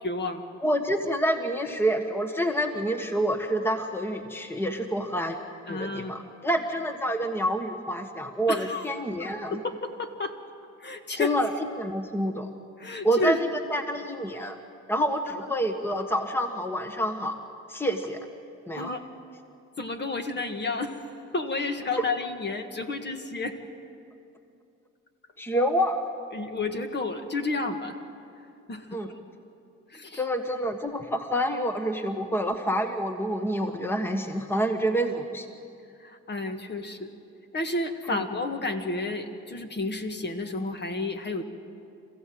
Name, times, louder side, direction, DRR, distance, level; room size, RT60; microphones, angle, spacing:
voice 1, 0.0-0.4 5.7-6.2 8.5-8.9 9.2-10.4 10.8-11.4 12.8-13.4 18.7-19.0 19.8-21.0 21.3-23.6 26.3-28.0 28.7-29.0 29.9-30.2 36.0-37.1 37.5-41.4, left 2 dB, 35° left, 6 dB, 1.7 m, -31 dB
voice 2, 0.6-5.4 5.7-9.6 11.2-11.5 11.8-12.5 13.0-14.6 14.9-17.4 17.7-18.2 18.7-18.9 21.9-22.0 25.4-26.0 28.9-29.1 30.1-35.5 38.1-38.2, equal, 5° left, 6 dB, 1.4 m, -27 dB
27.5 x 15.5 x 7.7 m, 2.5 s
cardioid pair, 90°, 30 cm